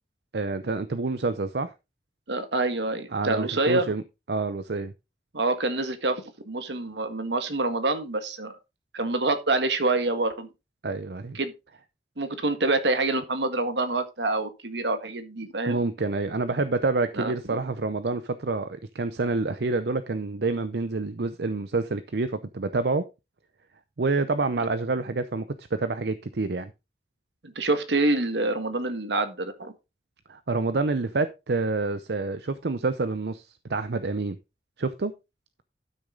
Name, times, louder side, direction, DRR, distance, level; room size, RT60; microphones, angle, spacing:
voice 1, 0.3-1.7 3.1-4.0 4.3-4.9 10.8-11.4 15.7-23.1 24.0-25.5 25.7-26.7 30.3-34.4 34.8-35.1, right 3 dB, 75° right, 0.6 m, -27 dB
voice 2, 2.3-3.9 5.3-8.6 8.9-10.5 11.3-11.5 12.2-15.8 17.2-17.3 27.4-29.7, right 2 dB, 90° right, 1.6 m, -26 dB
12.0 x 6.5 x 3.8 m
head